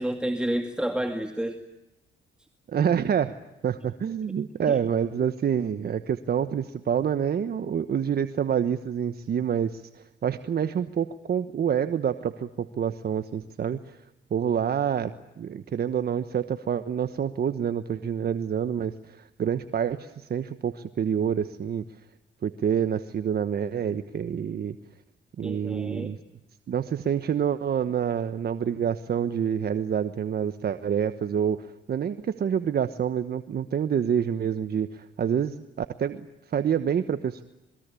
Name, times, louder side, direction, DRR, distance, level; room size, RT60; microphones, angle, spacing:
voice 1, 0.0-1.6 4.7-4.8 25.4-26.2, right 1 dB, 5° right, 5 dB, 2.3 m, -30 dB
voice 2, 2.7-3.4 3.6-14.0 14.3-21.8 22.4-24.8 25.4-26.2 26.7-37.4, right 8 dB, 50° right, 10 dB, 1.2 m, -27 dB
28.0 x 21.5 x 8.4 m, 0.93 s
cardioid pair, 90°, 20 cm